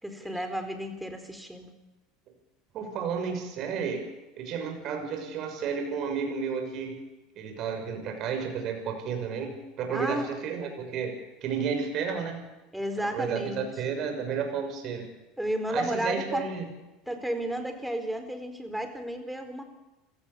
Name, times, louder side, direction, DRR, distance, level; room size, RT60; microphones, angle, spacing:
voice 1, 0.0-1.7 9.9-10.3 12.7-13.7 15.4-16.5 17.1-19.6, right 1 dB, 5° right, 7 dB, 4.4 m, -32 dB
voice 2, 2.7-4.0 4.4-7.0 7.4-11.2 11.4-12.4 13.1-15.1 15.7-16.6, right 6 dB, 50° right, 5 dB, 6.3 m, -32 dB
27.5 x 17.5 x 7.1 m, 1.1 s
hypercardioid pair, 75°, 0 cm